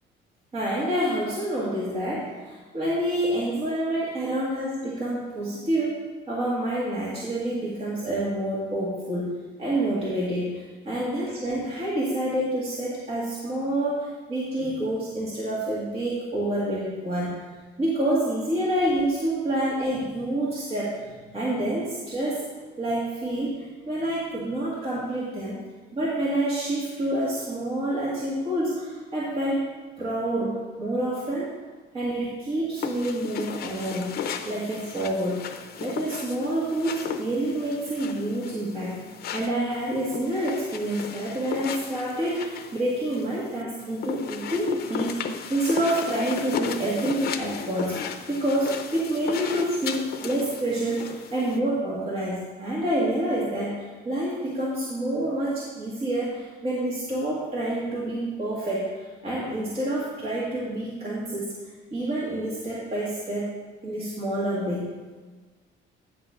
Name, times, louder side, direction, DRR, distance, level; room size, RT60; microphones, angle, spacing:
voice 1, 0.5-17.4 17.8-22.5 22.8-25.6 25.9-29.7 30.0-31.5 31.9-35.5 35.8-39.0 39.3-61.6 61.9-64.9, right 1 dB, 30° right, -8 dB, 1.9 m, -28 dB
sound 1, 32.8-51.6, left 7 dB, 55° left, 0.7 m, -35 dB
9.9 x 4.0 x 6.8 m, 1.4 s
cardioid pair, 145°, 20 cm